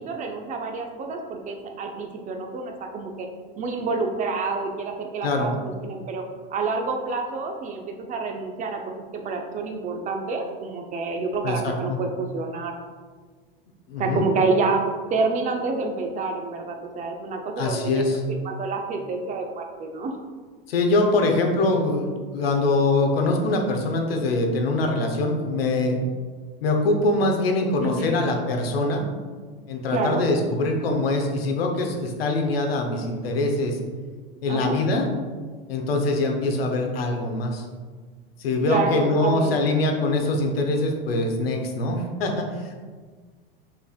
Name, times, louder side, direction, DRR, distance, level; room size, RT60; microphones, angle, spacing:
voice 1, 0.0-3.3 3.6-6.2 6.5-8.8 9.1-12.7 14.0-14.8 15.1-18.0 18.4-20.1 27.8-28.1 29.9-30.2 34.5-34.8 38.7-39.6, right 3 dB, 25° right, 3 dB, 0.5 m, -28 dB
voice 2, 5.2-5.5 11.4-12.0 13.9-14.3 17.6-18.2 20.7-26.0 26.6-29.0 29.7-33.8 34.4-35.1 35.7-37.6 38.4-42.8, left 2 dB, 85° left, 3 dB, 0.8 m, -23 dB
5.6 x 3.3 x 2.3 m, 1.5 s
hypercardioid pair, 110°, 29 cm